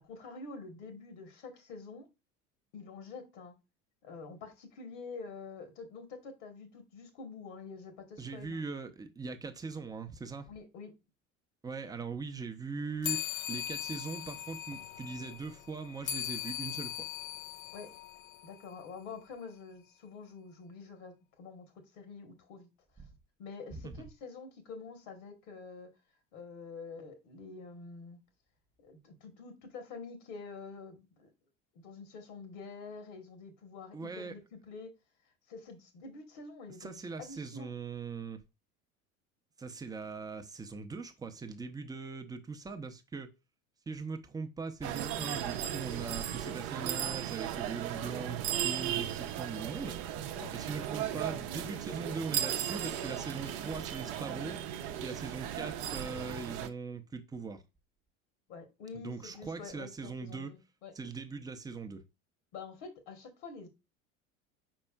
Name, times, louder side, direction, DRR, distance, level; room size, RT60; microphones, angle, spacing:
voice 1, 0.0-2.1 2.7-3.6 4.0-8.6 10.5-10.9 17.7-17.9 18.4-22.7 23.4-25.9 26.3-28.2 28.8-31.3 31.7-34.9 35.5-37.7 50.3-50.5 58.5-60.9 62.5-63.7, left 4 dB, 60° left, 1.3 m, -47 dB
voice 2, 8.2-10.5 11.6-13.2 13.5-17.1 23.7-24.0 33.9-34.3 36.8-38.4 39.6-43.3 43.9-50.0 50.5-54.6 55.0-57.6 58.9-60.5 60.9-62.0, right 4 dB, 10° right, 0.6 m, -41 dB
sound 1, 13.0-18.9, left 11 dB, 80° left, 0.6 m, -40 dB
sound 2, 44.8-56.7, right 10 dB, 50° right, 0.6 m, -36 dB
5.0 x 4.5 x 2.3 m
figure-of-eight pair, 75°, 41 cm